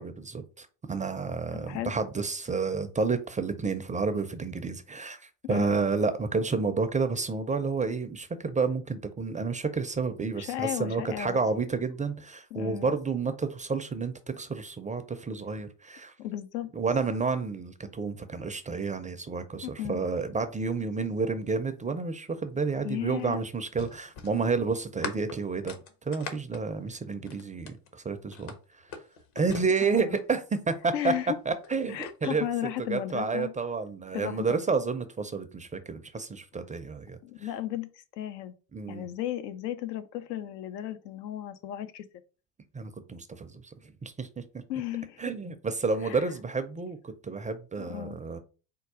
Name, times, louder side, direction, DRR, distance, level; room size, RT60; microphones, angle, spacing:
voice 1, 0.0-16.1 16.7-25.8 26.1-28.5 29.4-31.1 31.5-32.4 32.9-37.2 38.7-39.0 42.7-43.6 44.0-44.4 45.2-48.4, right 4 dB, 15° right, 0.4 m, -30 dB
voice 2, 5.4-5.8 10.4-11.4 12.5-12.9 16.2-16.7 19.6-20.0 22.8-23.4 29.8-30.2 30.9-31.4 31.9-33.5 34.1-34.6 37.2-38.5 38.9-42.1 44.7-45.2 46.0-46.3 47.9-48.2, left 12 dB, 80° left, 0.7 m, -34 dB
sound 1, 22.6-27.9 28.3-30.4 31.4-32.2, left 5 dB, 60° left, 1.2 m, -42 dB
4.5 x 2.3 x 4.7 m
hypercardioid pair, 75°, 50 cm